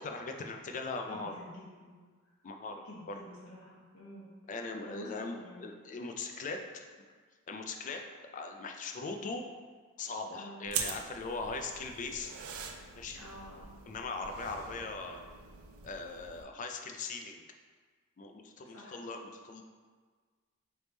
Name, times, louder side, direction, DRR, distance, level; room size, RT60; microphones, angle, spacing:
voice 1, 0.0-1.3 2.4-3.1 4.5-6.9 7.5-8.0 8.3-9.5 10.0-12.3 13.0-13.2 13.9-15.2 15.8-17.3 18.2-19.6, left 3 dB, 35° left, 4 dB, 0.3 m, -40 dB
voice 2, 1.1-2.0 2.8-5.6 10.3-10.6 13.1-13.7 14.4-14.5 18.6-19.0, left 1 dB, 85° left, -5 dB, 1.0 m, -49 dB
sound 1, 10.7-16.4, right 6 dB, 70° right, 0.4 m, -43 dB
3.4 x 3.3 x 4.0 m, 1.5 s
head